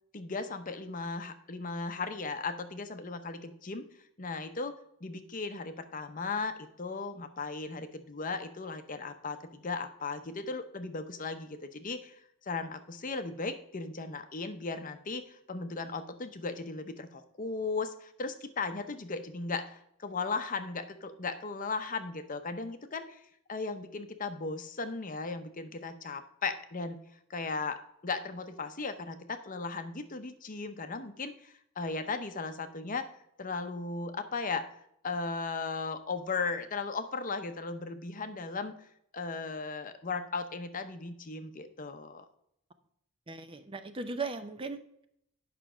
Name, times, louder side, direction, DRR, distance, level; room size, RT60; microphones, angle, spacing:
voice 1, 0.1-3.8 4.2-4.8 5.0-12.2 12.4-23.2 23.5-27.0 27.3-33.1 33.4-34.7 35.0-38.7 39.1-42.2, left 4 dB, 40° left, 8 dB, 0.7 m, -36 dB
voice 2, 43.3-45.1, right 3 dB, 25° right, 9 dB, 0.5 m, -38 dB
9.2 x 6.0 x 4.9 m, 0.73 s
head